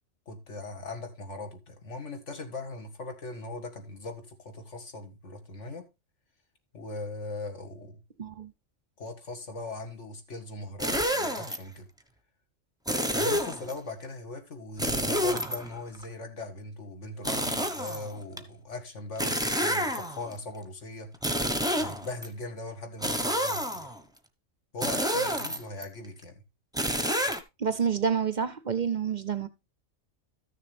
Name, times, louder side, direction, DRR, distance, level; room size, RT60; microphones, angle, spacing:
voice 1, 0.3-5.9 6.7-8.0 9.0-11.9 13.1-21.1 21.8-24.0 24.7-26.4, left 2 dB, 65° left, 2.1 m, -39 dB
voice 2, 8.2-8.5 27.6-29.5, right 6 dB, 50° right, 0.6 m, -28 dB
sound 1, 10.8-11.6 12.9-13.7 14.8-16.0 17.2-18.4 19.2-20.3 21.1-22.3 23.0-24.0 24.8-25.8 26.7-27.4, equal, 5° right, 0.8 m, -29 dB
13.5 x 6.7 x 3.3 m
omnidirectional pair, 1.3 m